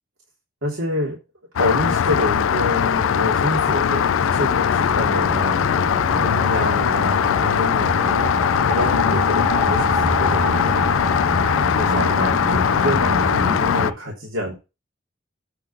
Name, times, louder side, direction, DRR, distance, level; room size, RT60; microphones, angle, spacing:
voice 1, 0.6-1.2 1.6-11.0 11.8-14.5, left 1 dB, 85° right, -4 dB, 3.3 m, -27 dB
Rain, 1.6-13.9, left 8 dB, 85° left, 0.4 m, -20 dB
sound 1, 3.7-13.9, equal, 25° right, 1.6 m, -28 dB
9.2 x 3.9 x 7.2 m, 0.28 s
head